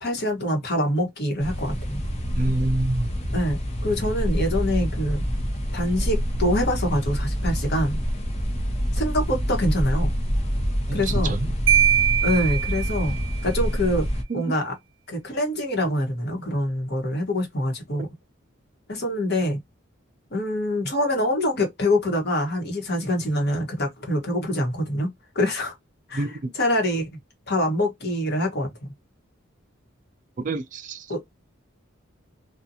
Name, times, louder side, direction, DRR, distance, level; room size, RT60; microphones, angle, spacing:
voice 1, 0.0-2.0 3.3-5.2 5.7-8.0 8.9-10.1 10.9-11.3 12.2-13.1 13.4-14.1 14.3-14.7 15.1-18.1 18.9-19.6 20.3-25.1 25.3-25.7 26.1-27.1 27.5-28.7 31.1-31.2, left 1 dB, 55° left, 1.1 m, -25 dB
sound 1, 1.4-14.2, equal, 35° left, 0.8 m, -26 dB
voice 2, 2.4-3.1 10.9-11.5 14.3-14.4 26.1-26.5 30.4-31.0, right 2 dB, 40° right, 0.4 m, -27 dB
Marimba xylophone, 11.7-13.4, right 10 dB, 70° right, 0.8 m, -22 dB
2.6 x 2.3 x 2.7 m
head